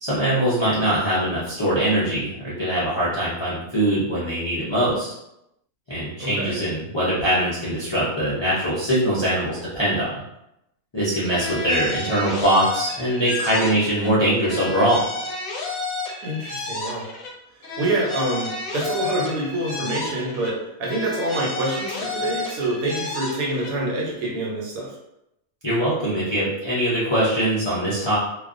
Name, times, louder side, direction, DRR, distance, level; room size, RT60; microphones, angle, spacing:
voice 1, 0.0-5.1 5.9-10.1 10.9-15.0 25.6-28.2, right 1 dB, 45° left, -10 dB, 0.3 m, -22 dB
voice 2, 6.2-6.6 16.2-17.1 17.8-24.9, right 1 dB, 85° right, -2 dB, 1.1 m, -26 dB
sound 1, 11.2-14.1 14.4-17.3 17.6-20.5 20.8-23.7, left 3 dB, 80° left, 1.0 m, -31 dB
2.3 x 2.2 x 2.5 m, 0.85 s
omnidirectional pair, 1.4 m